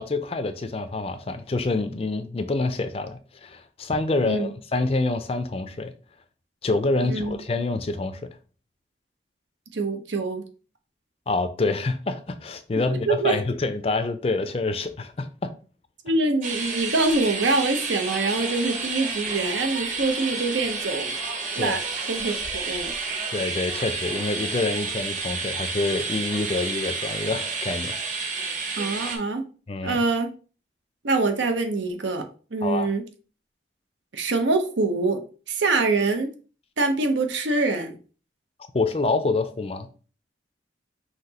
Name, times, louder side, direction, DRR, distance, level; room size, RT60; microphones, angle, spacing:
voice 1, 0.0-5.9 6.6-8.2 11.3-15.5 21.6-21.8 23.3-28.0 29.7-30.0 32.6-32.9 38.7-39.9, left 3 dB, 30° left, 0.4 m, -27 dB
voice 2, 7.0-7.4 9.7-10.4 12.7-13.4 16.0-21.1 21.5-21.8 22.1-22.9 28.8-29.4 29.8-30.3 31.0-32.2 32.5-33.0 34.1-35.2 35.5-36.3 36.8-38.0, right 3 dB, 90° right, 0.8 m, -24 dB
sound 1, 16.4-29.2, right 4 dB, 45° right, 0.9 m, -30 dB
5.8 x 2.9 x 2.8 m
head